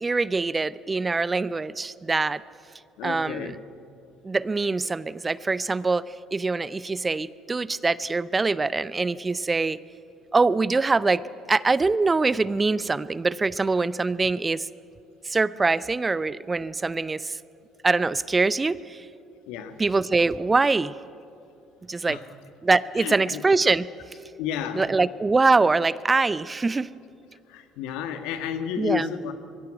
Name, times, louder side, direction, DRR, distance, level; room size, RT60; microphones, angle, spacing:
voice 1, 0.0-2.4 3.0-3.5 4.2-9.8 10.3-11.2 11.5-14.7 15.2-17.4 17.8-19.0 19.8-20.9 21.9-22.2 22.6-23.9 24.8-26.9 28.8-29.1, right 3 dB, 25° right, 19 dB, 0.5 m, -23 dB
voice 2, 3.0-3.6 19.5-19.8 22.1-22.2 22.9-23.4 24.4-24.9 27.5-29.3, left 8 dB, 70° left, 8 dB, 1.6 m, -31 dB
22.5 x 16.0 x 9.2 m, 2.7 s
hypercardioid pair, 55°, 0 cm